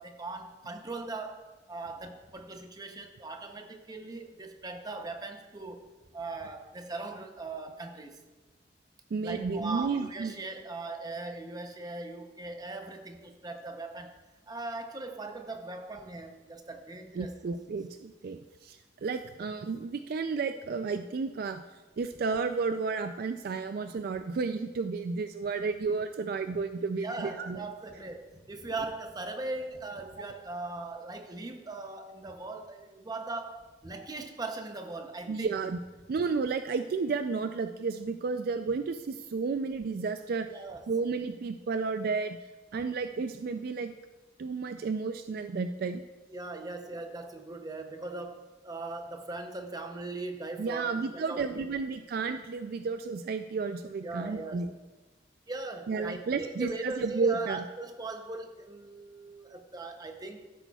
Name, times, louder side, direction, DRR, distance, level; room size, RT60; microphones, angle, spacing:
voice 1, 0.0-5.9 6.1-8.2 9.2-14.1 14.5-17.4 27.0-35.5 40.5-40.9 46.3-51.7 54.0-54.7 55.5-60.4, right 2 dB, 20° right, 5 dB, 0.7 m, -39 dB
voice 2, 9.1-10.3 17.2-21.6 22.0-27.6 35.3-35.8 36.1-40.5 40.9-42.4 42.7-43.9 44.4-46.0 50.6-54.7 55.9-57.6, right 4 dB, 55° right, 9 dB, 0.3 m, -32 dB
14.5 x 8.0 x 2.3 m, 1.2 s
head